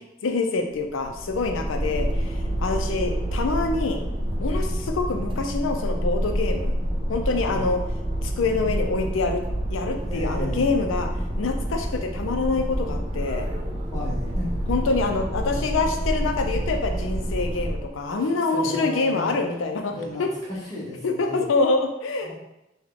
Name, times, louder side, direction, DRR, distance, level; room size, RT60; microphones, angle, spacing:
voice 1, 0.2-4.0 4.4-6.8 7.1-7.8 8.2-9.4 9.7-11.1 11.4-13.5 14.7-19.9 20.2-20.3 21.0-22.3, left 3 dB, 80° left, 4 dB, 0.5 m, -26 dB
sound 1, 0.7-18.0, equal, 25° right, 0.4 m, -28 dB
voice 2, 10.0-10.7 13.9-14.7 15.4-15.7 18.1-19.3 19.9-20.2 20.5-21.5 22.2-22.3, left 1 dB, 20° left, -7 dB, 0.9 m, -34 dB
3.5 x 2.2 x 3.7 m, 0.89 s
head